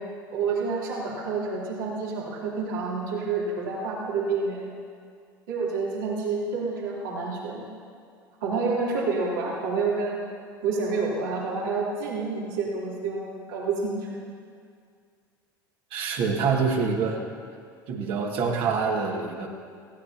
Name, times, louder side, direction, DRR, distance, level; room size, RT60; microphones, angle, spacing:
voice 1, 0.3-4.6 5.5-7.6 8.4-10.2 10.6-14.1, right 4 dB, 70° right, -5 dB, 3.3 m, -28 dB
voice 2, 15.9-17.2 17.9-19.5, right 5 dB, 50° right, 0 dB, 2.1 m, -26 dB
18.5 x 16.0 x 2.9 m, 2.2 s
figure-of-eight pair, 70°, 11 cm